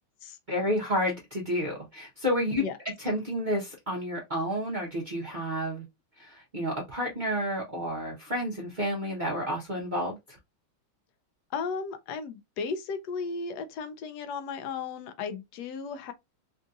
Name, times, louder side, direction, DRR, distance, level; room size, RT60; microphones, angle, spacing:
voice 1, 0.5-2.6 3.0-5.8 6.2-10.2, equal, 75° right, 0.4 m, -30 dB
voice 2, 11.5-16.1, left 5 dB, 85° left, 0.8 m, -35 dB
3.6 x 2.6 x 2.4 m
omnidirectional pair, 2.3 m